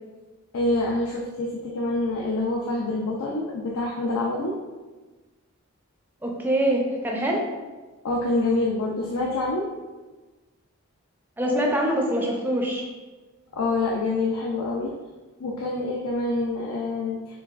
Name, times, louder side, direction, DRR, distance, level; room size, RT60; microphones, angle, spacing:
voice 1, 0.5-4.6 8.0-9.7 13.5-14.9 15.4-17.4, left 2 dB, 80° left, -2 dB, 0.5 m, -26 dB
voice 2, 6.2-7.5 11.4-12.8, right 1 dB, 10° right, -1 dB, 0.4 m, -24 dB
4.5 x 3.1 x 2.4 m, 1.2 s
head